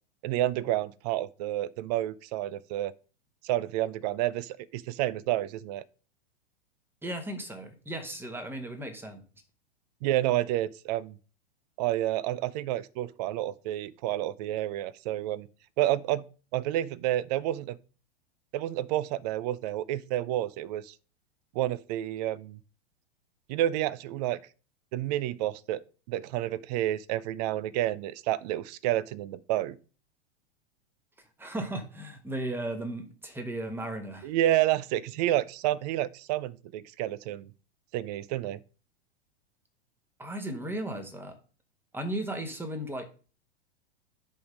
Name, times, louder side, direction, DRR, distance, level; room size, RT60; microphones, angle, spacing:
voice 1, 0.2-2.9 3.4-5.8 10.0-11.2 11.8-15.5 15.8-16.2 16.5-17.8 18.5-20.9 21.5-22.6 23.5-24.4 24.9-25.8 26.1-29.8 34.2-37.5 37.9-38.6, right 14 dB, 40° right, 0.5 m, -29 dB
voice 2, 7.0-9.2 31.4-34.3 40.2-41.4 41.9-43.0, right 1 dB, 5° right, 1.3 m, -35 dB
10.5 x 3.6 x 5.1 m
figure-of-eight pair, 100°, 32 cm